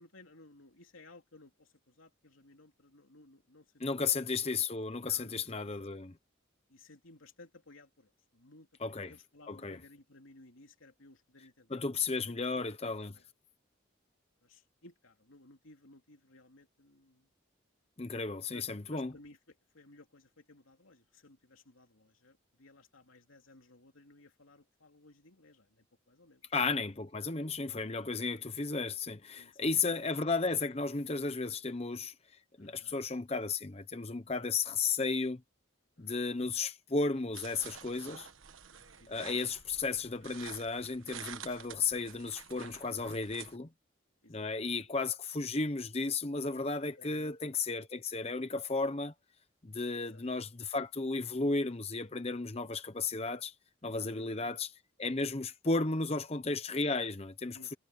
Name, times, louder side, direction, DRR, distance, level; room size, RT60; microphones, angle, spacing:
voice 1, 0.0-4.2 5.0-5.7 6.7-13.2 14.4-17.3 18.5-26.5 28.1-28.4 29.4-29.6 32.6-33.0 36.0-36.5 38.7-39.3 41.7-42.1 44.2-44.8 46.9-47.4 50.0-50.2 54.0-54.5 57.5-57.8, left 2 dB, 90° left, 3.2 m, -59 dB
voice 2, 3.8-6.1 8.8-9.1 9.5-9.8 11.7-13.1 18.0-19.1 26.5-32.1 32.6-35.4 36.0-38.3 39.1-43.7 44.3-49.1 49.6-53.5 53.8-54.7 55.0-57.7, left 4 dB, 30° left, 0.8 m, -34 dB
sound 1, 37.3-43.6, right 8 dB, 85° right, 1.4 m, -49 dB
head